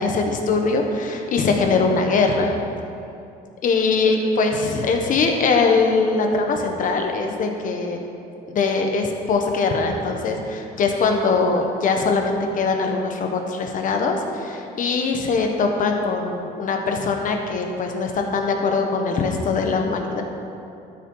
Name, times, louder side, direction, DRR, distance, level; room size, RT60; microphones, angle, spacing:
voice 1, 0.0-2.5 3.6-8.0 8.5-20.2, left 4 dB, 50° left, 3 dB, 1.3 m, -22 dB
12.5 x 6.1 x 4.9 m, 2.6 s
cardioid pair, 110°, 17 cm